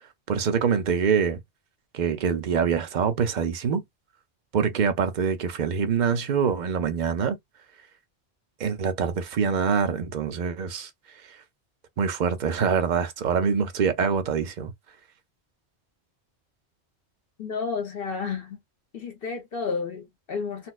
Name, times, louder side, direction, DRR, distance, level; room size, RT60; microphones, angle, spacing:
voice 1, 0.3-1.4 1.9-3.8 4.5-7.4 8.6-10.9 12.0-14.7, right 6 dB, 50° right, 0.6 m, -25 dB
voice 2, 17.4-18.6 18.9-20.7, left 5 dB, 55° left, 1.1 m, -31 dB
4.1 x 2.2 x 2.3 m
omnidirectional pair, 1.1 m